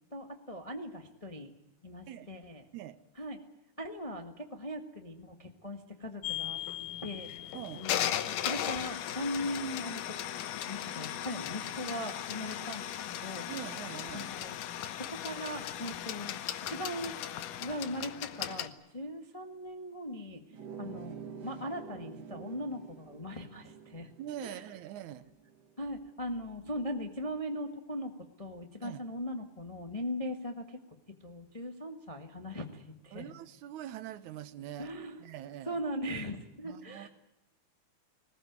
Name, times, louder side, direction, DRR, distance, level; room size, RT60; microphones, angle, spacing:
voice 1, 0.1-1.5 1.8-2.6 3.2-3.5 3.8-6.6 7.0-10.2 10.6-12.9 13.2-13.5 14.1-14.6 15.0-17.1 17.6-20.4 20.8-24.1 24.4-24.6 25.8-28.1 28.4-30.8 31.2-33.3 34.8-35.2 35.7-37.1, equal, 20° left, 0.9 m, -39 dB
sound 1, 6.2-18.7, left 11 dB, 85° left, 2.6 m, -37 dB
voice 2, 7.5-7.9 13.5-14.3 24.2-25.3 28.8-29.0 33.1-34.9 35.2-35.8 36.6-37.1, right 12 dB, 75° right, 2.3 m, -43 dB
sound 2, 20.5-25.8, right 6 dB, 45° right, 1.5 m, -48 dB
20.0 x 19.0 x 9.4 m
omnidirectional pair, 3.6 m